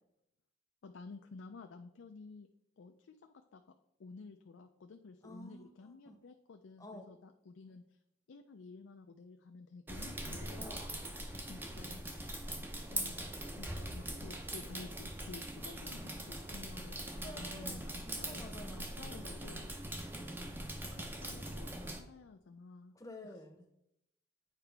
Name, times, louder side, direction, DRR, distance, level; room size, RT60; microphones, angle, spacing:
voice 1, 0.8-2.5 2.8-3.6 4.0-7.8 8.3-10.8 11.4-12.0 12.9-18.4 18.7-19.7 20.2-20.5 20.9-23.0, left 4 dB, 85° left, 6 dB, 0.4 m, -52 dB
voice 2, 5.2-6.2 6.8-7.1 10.6-11.0 17.1-19.6 22.9-23.7, left 1 dB, 15° left, 4 dB, 0.8 m, -51 dB
sound 1, 9.9-22.0, right 1 dB, 10° right, 0.5 m, -42 dB
8.9 x 4.8 x 3.4 m, 0.81 s
head